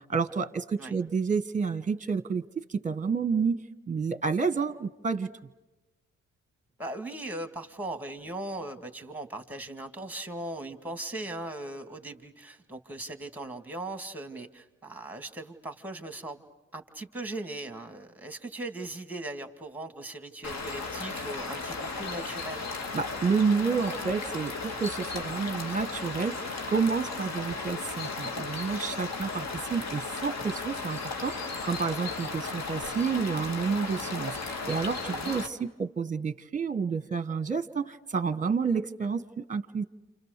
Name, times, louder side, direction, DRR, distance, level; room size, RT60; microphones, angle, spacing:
voice 1, 0.0-3.6 3.9-5.3 22.9-29.4 29.7-39.8, right 5 dB, 25° right, 12 dB, 1.3 m, -30 dB
voice 2, 6.8-16.4 16.7-22.7 35.1-35.3, right 2 dB, 5° right, 7 dB, 2.2 m, -39 dB
sound 1, 20.4-35.5, left 4 dB, 55° left, 2.1 m, -35 dB
29.0 x 27.5 x 6.7 m, 1.1 s
supercardioid pair, 55°, 33 cm